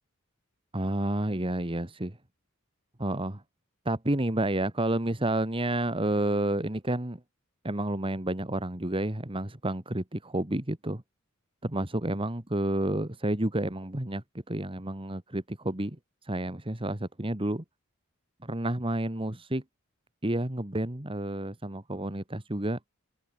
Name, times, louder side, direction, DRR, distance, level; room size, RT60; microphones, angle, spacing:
voice 1, 0.7-2.2 3.0-3.4 3.9-7.2 7.6-11.0 11.6-16.0 16.2-17.6 18.4-19.6 20.2-22.8, right 1 dB, 25° right, 1.9 m, -30 dB
head